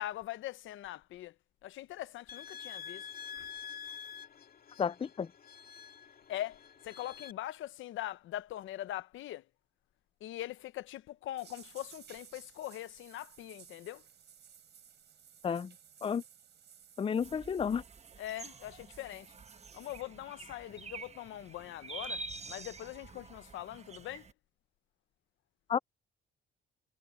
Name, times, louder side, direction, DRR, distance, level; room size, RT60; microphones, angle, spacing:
voice 1, 0.0-1.4 1.6-3.1 3.3-3.5 6.3-9.5 10.2-14.0 18.2-19.3 19.7-24.3, left 14 dB, 80° left, 0.8 m, -42 dB
sound 1, 2.3-7.3, left 8 dB, 50° left, 2.2 m, -47 dB
voice 2, 4.8-5.3 15.4-15.7 16.0-16.2 17.0-17.8 25.7-25.8, left 7 dB, 25° left, 0.5 m, -31 dB
sound 2, 11.4-20.0, right 8 dB, 60° right, 6.3 m, -58 dB
sound 3, 17.2-24.3, right 3 dB, 35° right, 1.2 m, -47 dB
cardioid pair, 90°, 20 cm